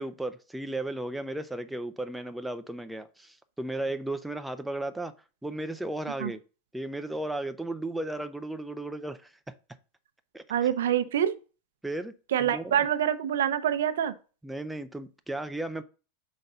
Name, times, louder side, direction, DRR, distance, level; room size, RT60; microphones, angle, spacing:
voice 1, 0.0-5.1 5.4-6.4 6.7-9.3 10.3-10.4 11.8-12.1 12.4-12.8 14.4-15.8, right 1 dB, 5° right, 0.6 m, -35 dB
voice 2, 10.5-11.4 12.3-14.1, right 10 dB, 80° right, 0.7 m, -26 dB
5.2 x 4.0 x 5.5 m
hypercardioid pair, 125°, 0 cm